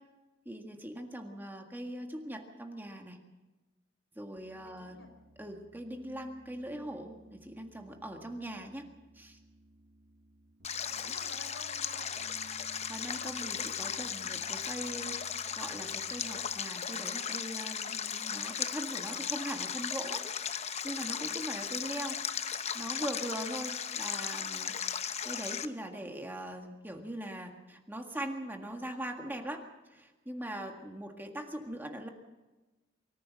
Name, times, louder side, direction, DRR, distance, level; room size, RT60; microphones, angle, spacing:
voice 1, 0.5-3.2 4.1-5.0 5.4-8.8 9.1-9.4 11.0-11.2 12.6-15.2 15.5-20.2 20.8-24.7 25.2-29.6 29.9-32.1, right 1 dB, 10° right, 3 dB, 1.8 m, -41 dB
Piano, 4.4-16.8, right 1 dB, 65° right, 2.0 m, -58 dB
voice 2, 4.6-5.1 10.8-12.3, left 3 dB, 75° left, 4 dB, 4.8 m, -52 dB
Stream, 10.6-25.7, left 8 dB, 35° left, 0.8 m, -36 dB
24.0 x 15.0 x 7.6 m, 1.2 s
head